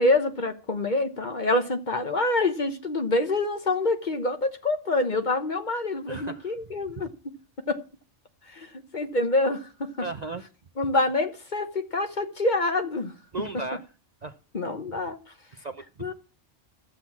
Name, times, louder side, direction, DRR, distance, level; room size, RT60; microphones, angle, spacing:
voice 1, 0.0-7.1 7.7-7.8 8.5-9.9 10.8-13.1 14.5-15.2 16.0-16.1, left 2 dB, 40° left, 1.1 m, -26 dB
voice 2, 6.1-6.5 7.0-7.1 10.0-10.4 13.3-13.9 14.2-14.4 15.5-16.1, right 3 dB, 40° right, 0.7 m, -36 dB
12.5 x 7.8 x 7.3 m
omnidirectional pair, 1.3 m